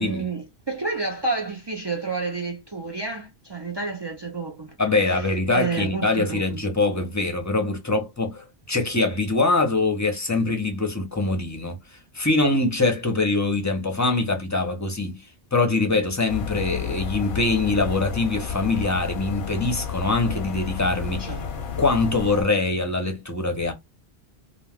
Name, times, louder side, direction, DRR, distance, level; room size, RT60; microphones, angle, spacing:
voice 1, 0.0-4.7 5.1-6.6 21.2-21.5, right 4 dB, 45° right, 0.3 m, -30 dB
voice 2, 4.8-11.8 12.1-15.2 15.5-21.3 21.8-23.7, left 3 dB, 20° left, 0.6 m, -23 dB
sound 1, 16.3-22.4, left 7 dB, 55° left, 0.7 m, -31 dB
2.4 x 2.3 x 3.3 m
omnidirectional pair, 1.2 m